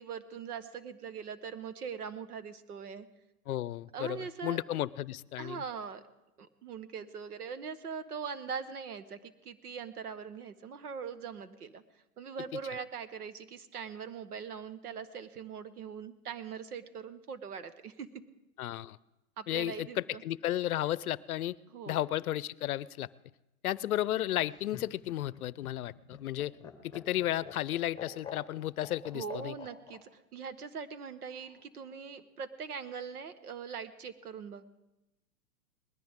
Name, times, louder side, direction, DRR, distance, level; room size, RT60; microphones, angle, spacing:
voice 1, 0.0-3.1 3.9-4.6 5.4-6.0 6.4-11.8 12.2-18.1 19.4-20.2 21.7-22.0 29.1-34.6, right 6 dB, 80° right, 11 dB, 1.4 m, -41 dB
voice 2, 3.5-5.6 18.6-19.0 19.5-21.6 21.9-23.1 23.6-26.5 26.8-29.5, left 13 dB, 75° left, 21 dB, 0.6 m, -33 dB
Laughter, 24.3-30.0 31.3-31.9, left 7 dB, 10° left, 1.4 m, -48 dB
20.0 x 14.0 x 3.7 m, 0.95 s
hypercardioid pair, 140°, 44 cm